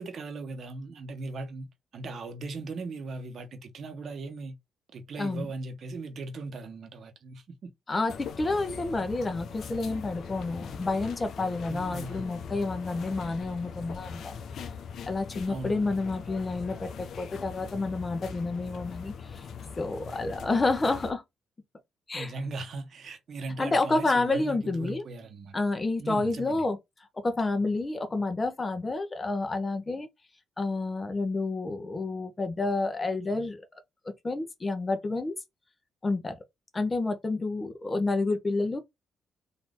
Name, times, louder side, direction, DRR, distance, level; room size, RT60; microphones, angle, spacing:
voice 1, 0.0-1.7 1.9-4.6 4.9-7.7 11.7-12.2 15.5-15.8 22.1-25.5 26.0-26.6, right 3 dB, 55° right, 1.2 m, -38 dB
voice 2, 7.9-14.3 15.0-19.4 19.8-21.2 22.1-22.3 23.6-25.0 25.5-26.8 27.2-30.1 30.6-33.7 34.0-35.3 36.0-36.4 36.7-38.8, left 3 dB, 25° left, 1.0 m, -29 dB
sound 1, 8.1-21.1, left 6 dB, 65° left, 0.7 m, -41 dB
4.0 x 2.9 x 3.5 m
cardioid pair, 90°, 0 cm